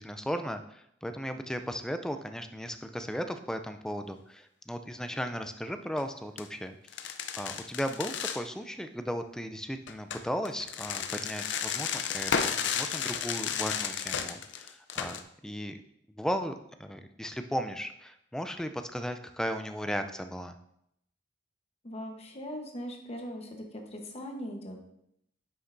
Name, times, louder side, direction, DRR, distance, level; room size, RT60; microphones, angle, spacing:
voice 1, 0.0-6.7 7.4-15.8 16.1-20.6, equal, 5° left, 8 dB, 0.4 m, -36 dB
sound 1, 5.9-6.0 6.4-6.5 6.9-8.4 9.9-15.2, left 7 dB, 65° left, 0.5 m, -33 dB
voice 2, 21.8-24.8, equal, 35° left, 2 dB, 1.0 m, -40 dB
9.7 x 5.5 x 2.6 m, 0.77 s
head